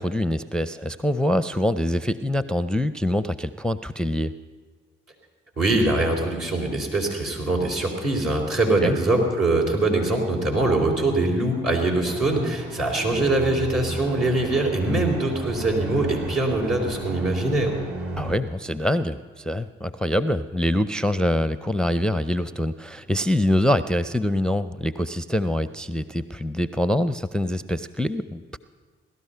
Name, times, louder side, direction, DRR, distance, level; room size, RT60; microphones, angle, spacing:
voice 1, 0.0-4.4 8.8-9.0 18.2-28.6, left 1 dB, 5° left, 13 dB, 0.5 m, -24 dB
voice 2, 5.6-17.7, right 2 dB, 70° right, -1 dB, 3.9 m, -23 dB
sound 1, 12.0-18.4, right 2 dB, 50° right, 1.9 m, -33 dB
18.0 x 12.5 x 5.6 m, 1.4 s
hypercardioid pair, 40°, 29 cm